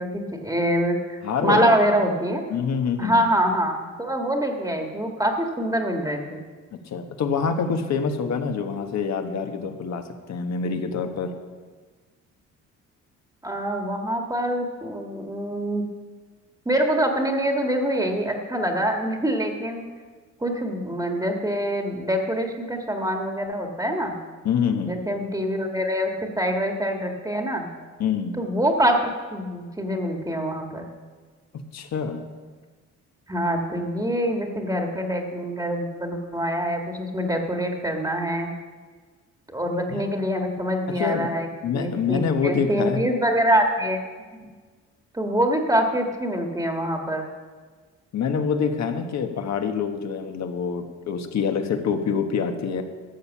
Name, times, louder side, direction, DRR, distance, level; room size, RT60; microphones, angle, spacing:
voice 1, 0.0-2.4 3.0-6.4 13.4-15.8 16.6-19.8 20.4-24.2 24.8-27.7 28.4-30.9 33.3-38.5 39.5-44.0 45.1-47.3, equal, 10° right, 2 dB, 1.6 m, -25 dB
voice 2, 1.2-1.7 2.5-3.2 6.7-11.3 24.4-25.0 28.0-28.4 31.5-32.3 39.9-40.0 40.9-41.3 41.6-43.0 48.1-52.8, left 6 dB, 65° left, 6 dB, 1.4 m, -26 dB
13.0 x 7.3 x 7.3 m, 1.5 s
cardioid pair, 90°, 30 cm